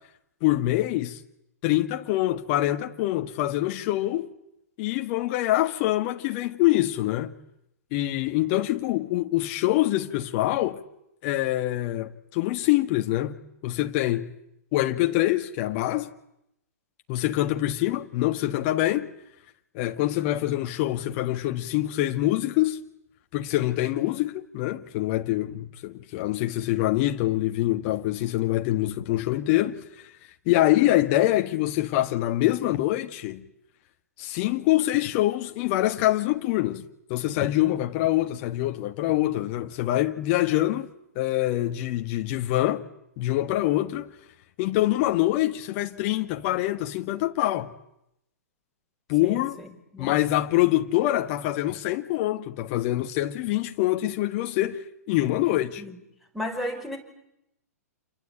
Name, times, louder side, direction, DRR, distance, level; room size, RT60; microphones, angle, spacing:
voice 1, 0.4-1.2 1.6-4.3 4.8-7.3 7.9-10.8 11.2-13.4 13.6-14.3 14.7-16.1 17.1-19.1 19.7-22.8 23.3-30.1 30.4-33.4 34.2-36.8 37.1-40.9 41.1-42.8 43.2-44.1 44.6-47.7 49.1-49.6 50.0-54.8 55.1-55.8, left 15 dB, 40° left, 1.6 m, -25 dB
voice 2, 49.2-50.2 55.3-56.0 56.3-57.0, left 1 dB, ahead, 5.6 m, -35 dB
28.5 x 23.0 x 8.7 m
figure-of-eight pair, 115°, 8 cm